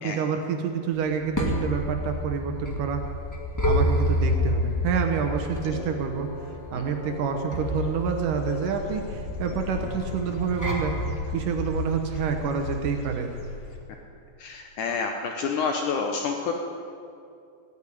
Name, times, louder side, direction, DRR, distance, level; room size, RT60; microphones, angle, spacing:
voice 1, 0.0-3.0 3.6-6.3 6.7-11.0 11.3-13.3, right 6 dB, 70° right, 5 dB, 2.0 m, -28 dB
sound 1, 1.0-12.8, equal, 10° left, 1.0 m, -29 dB
sound 2, 3.7-11.1, left 5 dB, 75° left, 2.9 m, -41 dB
Dog / Bird, 7.5-13.8, left 3 dB, 55° left, 1.8 m, -40 dB
voice 2, 14.4-16.5, left 5 dB, 90° left, 3 dB, 1.7 m, -28 dB
16.0 x 9.0 x 9.9 m, 2.5 s
omnidirectional pair, 4.9 m